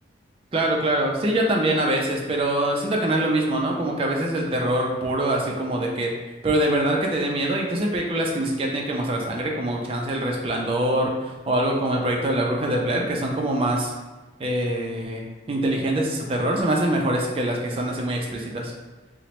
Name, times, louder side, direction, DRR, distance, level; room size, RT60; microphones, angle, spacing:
voice 1, 0.5-6.1 6.4-13.9 14.4-18.7, right 1 dB, 30° right, 0 dB, 0.3 m, -24 dB
2.9 x 2.1 x 2.9 m, 1.2 s
head